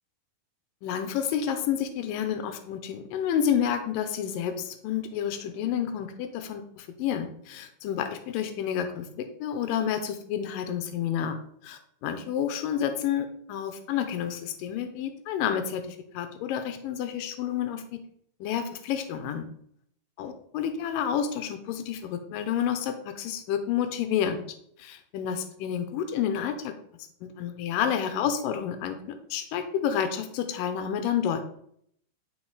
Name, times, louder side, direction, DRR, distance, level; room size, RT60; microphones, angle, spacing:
voice 1, 0.8-11.4 11.6-18.0 18.4-19.5 20.2-24.4 24.8-26.7 27.2-31.4, left 8 dB, 85° left, 8 dB, 2.5 m, -30 dB
11.5 x 4.2 x 4.8 m, 0.67 s
omnidirectional pair, 4.0 m